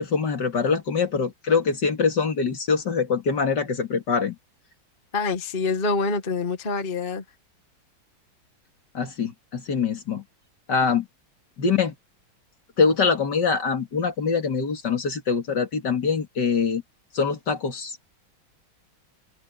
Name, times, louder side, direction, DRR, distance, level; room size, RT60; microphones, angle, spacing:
voice 1, 0.0-4.4 8.9-10.2 10.7-11.1 11.6-11.9 12.8-16.8 17.1-18.0, left 5 dB, 55° left, 3.0 m, -24 dB
voice 2, 5.1-7.2, left 3 dB, 30° left, 1.6 m, -26 dB
open air
omnidirectional pair, 2.2 m